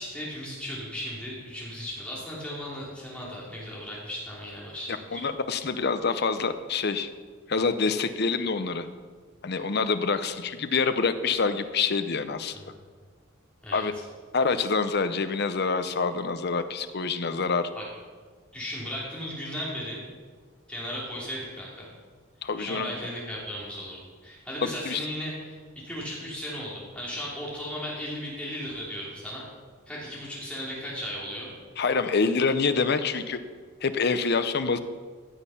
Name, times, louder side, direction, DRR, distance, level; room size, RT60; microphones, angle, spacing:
voice 1, 0.0-5.2 12.5-12.8 13.6-13.8 17.7-17.8 18.5-20.0 20.7-21.9 22.6-25.6 25.8-29.4 29.9-31.5 32.1-32.2, equal, 5° left, -6 dB, 3.1 m, -36 dB
voice 2, 5.1-7.1 7.5-8.9 9.4-12.5 13.7-13.9 14.3-17.7 22.4-22.9 24.6-25.0 31.8-33.4 33.8-34.8, left 4 dB, 50° left, 10 dB, 0.7 m, -26 dB
15.0 x 6.5 x 5.7 m, 1.5 s
head